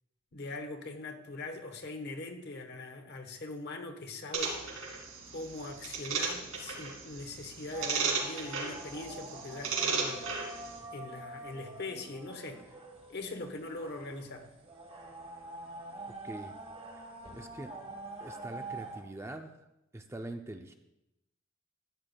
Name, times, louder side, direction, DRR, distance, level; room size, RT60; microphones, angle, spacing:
voice 1, 0.3-4.6 5.3-10.3 10.9-12.8 13.1-14.5, left 2 dB, 55° left, 5 dB, 1.0 m, -41 dB
sound 1, 4.3-10.8, right 4 dB, 80° right, 2.8 m, -35 dB
sound 2, 7.7-19.0, right 2 dB, 30° right, 1.3 m, -46 dB
voice 2, 17.3-17.7 18.2-19.5 19.9-20.8, right 1 dB, 15° right, 5 dB, 0.4 m, -43 dB
13.5 x 9.3 x 2.3 m, 0.89 s
head